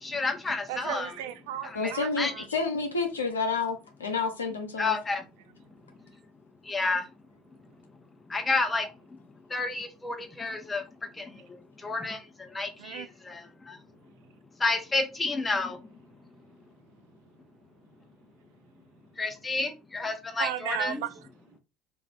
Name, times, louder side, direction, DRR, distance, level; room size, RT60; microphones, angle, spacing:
voice 1, 0.0-1.1 1.6-2.4 4.8-5.2 6.7-7.0 8.3-8.9 9.5-10.8 11.2-11.3 11.8-13.8 14.6-15.8 19.2-21.0, left 3 dB, 20° left, 0.8 m, -30 dB
voice 2, 0.7-2.5 5.7-5.8 12.8-13.1 20.4-21.6, right 12 dB, 70° right, 0.3 m, -36 dB
voice 3, 1.7-5.0, left 4 dB, 90° left, 0.7 m, -30 dB
2.4 x 2.2 x 3.5 m
hypercardioid pair, 70°, 0 cm